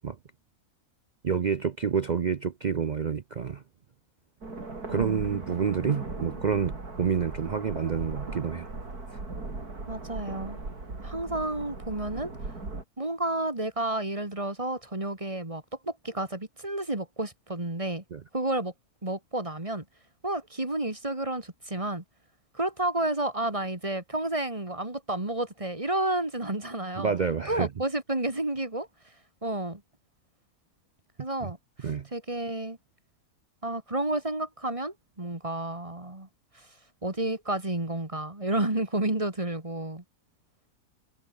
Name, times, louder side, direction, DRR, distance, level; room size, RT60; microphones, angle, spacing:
voice 1, 1.2-3.6 4.9-8.7 18.1-18.2 27.0-27.7 31.4-31.5 31.8-32.1, right 6 dB, 55° right, 0.4 m, -28 dB
sound 1, 4.4-12.8, right 3 dB, 80° right, 5.0 m, -38 dB
voice 2, 4.9-5.3 9.9-10.6 11.0-12.3 13.0-18.0 18.3-18.7 19.0-19.8 20.2-22.0 22.5-27.1 27.5-28.9 29.4-29.8 31.2-32.8 33.6-36.3 36.5-36.7 37.0-40.0, right 1 dB, 20° right, 2.8 m, -31 dB
omnidirectional pair, 1.6 m